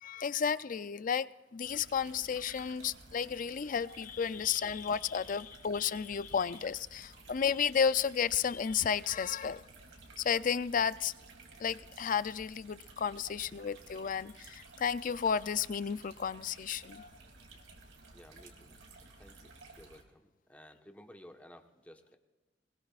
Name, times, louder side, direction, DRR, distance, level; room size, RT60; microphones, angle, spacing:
voice 1, 0.0-9.6 10.2-11.1 11.6-17.1, left 7 dB, 45° left, 0.4 m, -32 dB
sound 1, 1.6-20.0, right 3 dB, 85° right, 2.9 m, -55 dB
voice 2, 7.0-7.3 12.7-12.9 13.5-13.6 17.8-17.9 18.1-22.2, equal, 10° left, 1.2 m, -57 dB
21.5 x 21.0 x 2.5 m
head